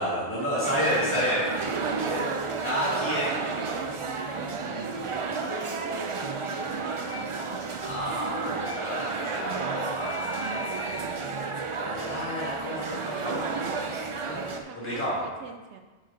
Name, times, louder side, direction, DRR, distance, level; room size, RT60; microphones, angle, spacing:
voice 1, 0.0-1.5 2.1-3.3 7.8-10.1 11.8-15.2, equal, 10° left, -8 dB, 2.0 m, -31 dB
sound 1, 0.6-14.6, right 4 dB, 50° right, 0.4 m, -32 dB
voice 2, 1.8-7.4 10.3-11.2 14.7-15.8, right 6 dB, 85° right, 5 dB, 0.9 m, -42 dB
Telephone, 2.0-2.5 5.5-6.0 6.9-7.2 8.4-8.7 10.0-11.0, left 4 dB, 90° left, 2.4 m, -40 dB
10.5 x 4.1 x 3.9 m, 1.3 s
omnidirectional pair, 1.1 m